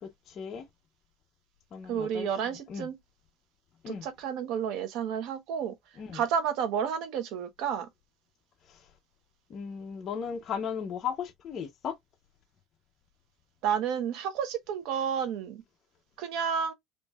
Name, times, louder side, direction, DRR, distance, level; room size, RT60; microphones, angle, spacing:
voice 1, 0.0-0.7 1.7-2.3 2.7-2.9 3.8-4.1 6.0-6.2 8.7-8.8 9.5-12.0, left 7 dB, 35° left, 0.8 m, -36 dB
voice 2, 1.9-3.0 3.9-5.8 6.1-7.9 13.6-15.6 16.2-16.7, right 8 dB, 60° right, 1.0 m, -31 dB
5.1 x 2.7 x 2.4 m
cardioid pair, 160°, 0 cm